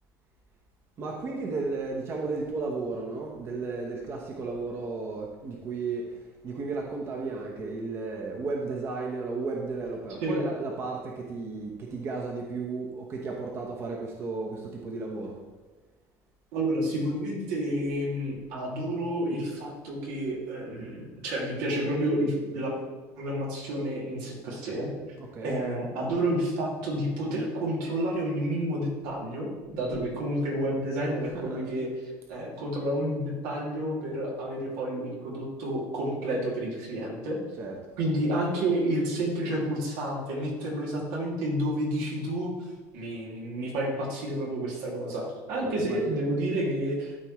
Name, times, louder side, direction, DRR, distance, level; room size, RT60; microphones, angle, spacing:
voice 1, 1.0-6.1 6.4-15.3 25.2-25.6 29.8-30.0 31.2-31.6 37.5-37.8 45.6-46.2, right 3 dB, 35° right, 0 dB, 1.0 m, -34 dB
voice 2, 16.5-22.7 23.2-24.9 25.4-31.9 32.3-37.4 38.0-42.5 42.9-47.3, right 1 dB, 85° right, -3 dB, 2.5 m, -30 dB
12.5 x 4.6 x 3.1 m, 1.2 s
cardioid pair, 160°, 7 cm